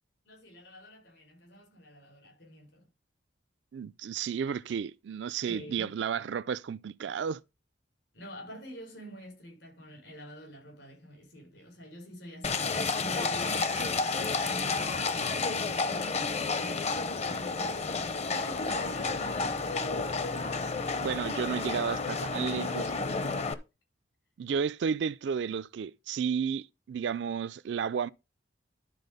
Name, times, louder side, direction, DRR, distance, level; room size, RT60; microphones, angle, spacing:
voice 1, 0.3-2.9 5.4-5.9 8.1-20.5 23.1-23.6, equal, 75° left, 5.4 m, -48 dB
voice 2, 3.7-7.4 21.0-22.9 24.4-28.1, right 7 dB, 70° right, 0.4 m, -32 dB
Livestock farm animals working animals, 12.4-23.5, left 4 dB, 35° left, 0.7 m, -31 dB
11.5 x 4.2 x 5.3 m
head